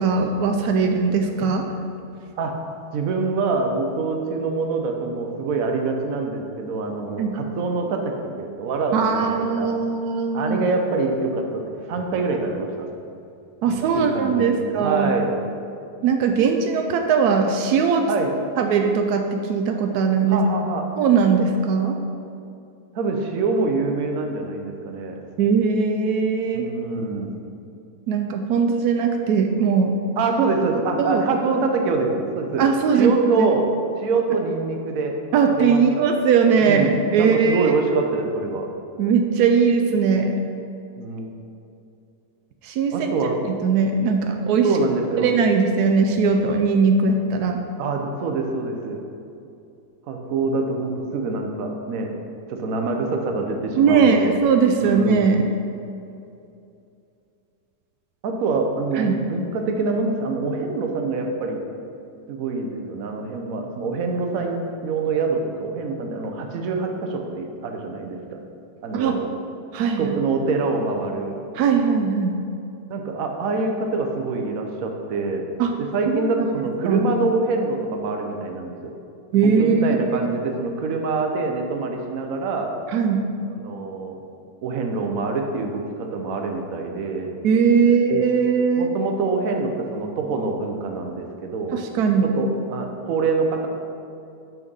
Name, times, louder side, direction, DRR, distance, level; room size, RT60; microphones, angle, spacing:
voice 1, 0.0-1.7 7.2-7.3 8.9-10.7 13.6-15.1 16.0-18.1 18.6-20.4 21.0-22.0 25.4-26.7 28.1-29.9 31.0-31.2 32.6-33.5 35.3-37.7 39.0-40.4 42.6-43.1 43.5-44.7 45.2-47.6 53.8-55.5 59.0-59.2 68.9-69.2 69.7-70.1 71.5-72.4 75.6-75.7 76.1-76.3 76.8-77.0 79.3-80.2 82.9-83.2 87.4-88.9 91.7-92.3, right 5 dB, 85° right, 4 dB, 0.8 m, -20 dB
voice 2, 2.9-9.7 10.3-12.7 13.9-15.3 18.1-18.3 20.3-20.9 22.9-25.2 26.5-27.4 30.2-32.6 32.9-33.7 34.0-35.2 35.5-36.1 36.6-38.7 41.0-41.3 42.9-43.3 44.6-45.3 47.8-49.0 50.1-52.1 52.5-54.3 54.8-55.3 58.2-61.6 62.3-68.4 68.8-69.3 70.0-71.4 72.9-75.4 75.8-78.9 79.3-82.7 83.6-84.2 84.6-87.3 88.8-91.7 92.2-93.7, right 3 dB, 60° right, 3 dB, 0.9 m, -25 dB
6.1 x 6.0 x 5.3 m, 2.6 s
omnidirectional pair, 2.2 m